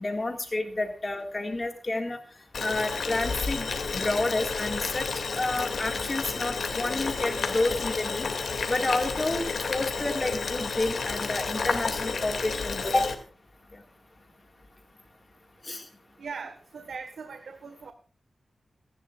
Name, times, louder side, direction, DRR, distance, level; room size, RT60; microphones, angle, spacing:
voice 1, 0.0-2.2 2.6-8.3 8.7-9.4 9.7-13.1 13.7-13.8 15.6-15.9, left 2 dB, 25° left, 4 dB, 2.0 m, -30 dB
Boiling, 2.5-13.1, left 4 dB, 65° left, 2.5 m, -31 dB
voice 2, 16.2-17.9, right 5 dB, 80° right, 7 dB, 1.5 m, -40 dB
27.0 x 11.5 x 2.5 m, 0.38 s
wide cardioid pair, 150°, 0 cm